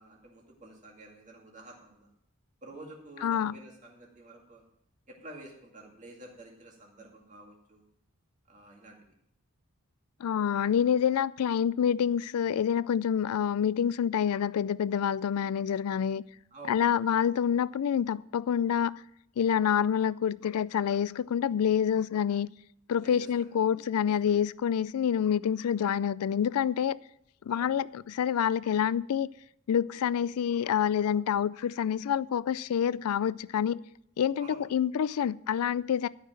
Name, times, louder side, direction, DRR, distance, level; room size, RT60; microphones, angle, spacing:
voice 1, 0.0-2.1 2.6-4.6 5.1-7.8 8.5-9.1 16.5-16.9 23.0-23.7 24.1-24.2 27.5-27.7 34.4-34.6, right 1 dB, 35° right, 2.2 m, -50 dB
voice 2, 3.2-3.5 10.2-16.2 16.7-19.0 19.4-22.5 22.9-27.0 27.5-29.3 29.7-33.8 34.2-36.1, left 8 dB, 90° left, 0.3 m, -27 dB
12.5 x 5.8 x 7.4 m
head